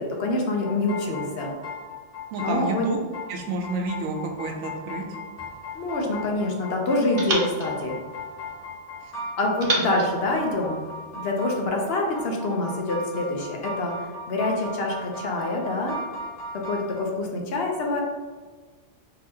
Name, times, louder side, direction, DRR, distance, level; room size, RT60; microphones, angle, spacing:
voice 1, 0.0-1.5 2.4-2.9 5.7-8.0 9.4-10.8 11.1-13.9 14.3-16.0 16.5-18.0, left 2 dB, 65° left, 0 dB, 0.8 m, -26 dB
sound 1, 0.6-17.0, left 1 dB, 85° left, 1.3 m, -37 dB
voice 2, 2.3-3.0 3.3-5.0, right 3 dB, 90° right, 1 dB, 0.9 m, -30 dB
sound 2, 5.4-6.6 7.2-8.8 9.6-11.2, right 2 dB, 55° right, 0.8 m, -33 dB
3.9 x 2.8 x 2.7 m, 1.4 s
omnidirectional pair, 1.2 m